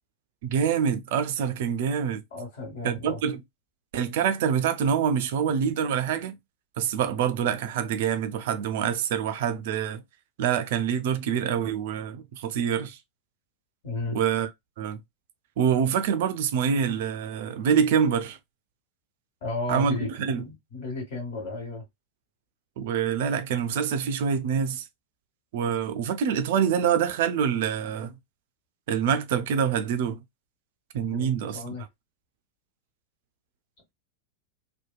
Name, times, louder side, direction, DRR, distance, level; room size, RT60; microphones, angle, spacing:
voice 1, 0.4-2.2 2.8-3.4 3.9-6.4 6.8-10.0 10.4-13.0 14.1-14.5 14.8-15.0 15.6-18.4 19.7-20.4 22.8-24.8 25.5-28.2 28.9-30.2 30.9-31.6, right 7 dB, 55° right, 0.3 m, -26 dB
voice 2, 2.3-3.2 13.8-14.2 19.4-21.8 31.1-31.8, left 2 dB, 50° left, 1.4 m, -34 dB
2.7 x 2.2 x 2.3 m
figure-of-eight pair, 90°, 0 cm